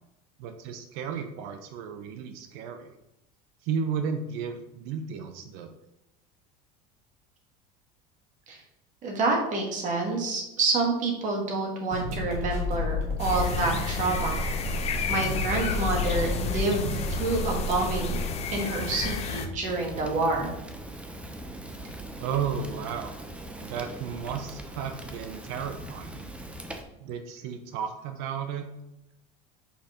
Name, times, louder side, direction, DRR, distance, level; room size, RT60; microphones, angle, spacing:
voice 1, 0.4-2.9 3.6-5.7 22.2-23.1 23.6-26.3 27.0-28.7, right 7 dB, 70° right, 7 dB, 0.7 m, -33 dB
voice 2, 9.0-14.4 15.1-16.8 17.2-18.2 18.5-20.5, right 3 dB, 45° right, 1 dB, 2.0 m, -28 dB
sound 1, 11.9-18.2, left 2 dB, 85° right, 2.2 m, -31 dB
sound 2, 13.2-19.5, left 4 dB, 35° left, 0.9 m, -32 dB
Fire, 19.6-26.8, right 1 dB, 5° right, 0.7 m, -41 dB
5.7 x 4.2 x 5.0 m, 0.89 s
supercardioid pair, 120°, 18 cm